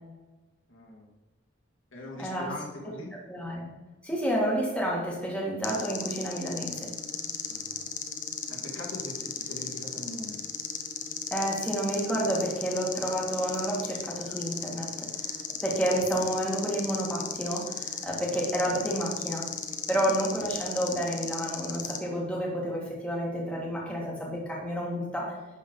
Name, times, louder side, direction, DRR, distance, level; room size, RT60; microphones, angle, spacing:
voice 1, 0.7-1.1 1.9-3.1 7.5-7.9 8.5-10.4 15.5-15.6, left 1 dB, 80° left, -1 dB, 1.8 m, -41 dB
voice 2, 2.2-2.5 3.3-3.6 4.0-6.9 11.3-19.5 19.9-25.4, right 1 dB, 5° left, -3 dB, 1.7 m, -30 dB
sound 1, 5.6-22.0, left 7 dB, 40° left, 0.7 m, -36 dB
11.0 x 3.8 x 5.2 m, 1.2 s
head